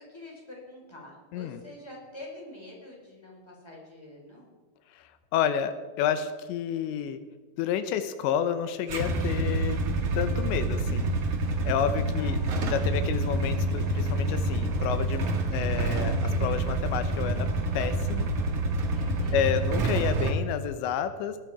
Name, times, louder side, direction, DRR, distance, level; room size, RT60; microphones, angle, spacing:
voice 1, 0.0-4.5 12.1-12.5 18.9-19.6, left 1 dB, 5° left, -1 dB, 4.0 m, -46 dB
voice 2, 5.3-7.2 7.6-9.8 10.1-11.1 11.7-17.5 17.7-18.3 19.3-21.4, left 9 dB, 85° left, 10 dB, 3.2 m, -30 dB
Motorcycle / Engine starting / Idling, 8.9-20.3, right 2 dB, 50° right, 2.0 m, -27 dB
19.0 x 14.0 x 5.0 m, 1.3 s
omnidirectional pair, 5.1 m